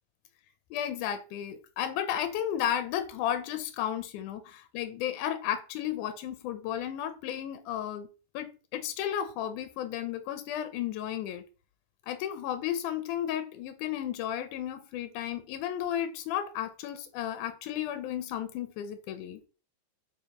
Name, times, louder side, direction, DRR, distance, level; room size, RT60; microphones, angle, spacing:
voice 1, 0.7-8.1 8.3-11.4 12.1-19.4, left 10 dB, 85° left, 9 dB, 2.2 m, -33 dB
8.7 x 3.9 x 2.9 m, 0.34 s
omnidirectional pair, 3.5 m